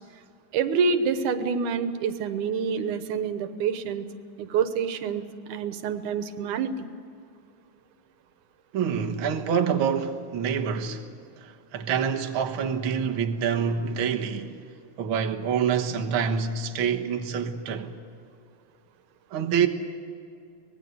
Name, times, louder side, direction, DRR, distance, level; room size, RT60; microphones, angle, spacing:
voice 1, 0.5-4.1 4.4-6.9, right 5 dB, 85° right, 2.6 m, -27 dB
voice 2, 8.7-11.1 11.4-14.7 15.0-17.9 19.3-19.7, right 7 dB, 50° right, 1.8 m, -26 dB
24.5 x 19.5 x 7.9 m
omnidirectional pair, 3.4 m